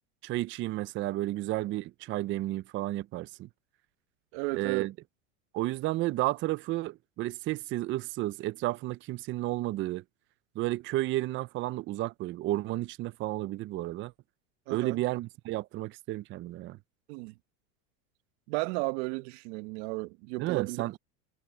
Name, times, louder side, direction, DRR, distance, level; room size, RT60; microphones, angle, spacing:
voice 1, 0.2-3.5 4.5-4.9 5.5-10.0 10.6-14.1 14.7-16.8 20.4-20.9, right 17 dB, 35° right, 0.5 m, -32 dB
voice 2, 4.3-4.9 14.7-15.0 17.1-17.4 18.5-20.8, right 25 dB, 60° right, 1.2 m, -34 dB
supercardioid pair, 120°, 37 cm